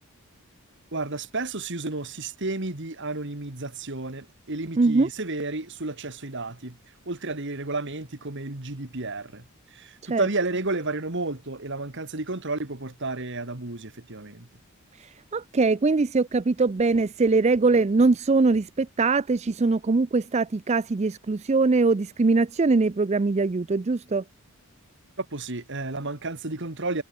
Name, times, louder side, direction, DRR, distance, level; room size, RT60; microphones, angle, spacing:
voice 1, 0.9-6.8 7.1-9.4 9.7-14.5 25.2-27.0, right 2 dB, 55° right, 2.1 m, -32 dB
voice 2, 4.8-5.1 10.1-10.3 15.0-24.2, right 3 dB, 30° right, 0.4 m, -22 dB
head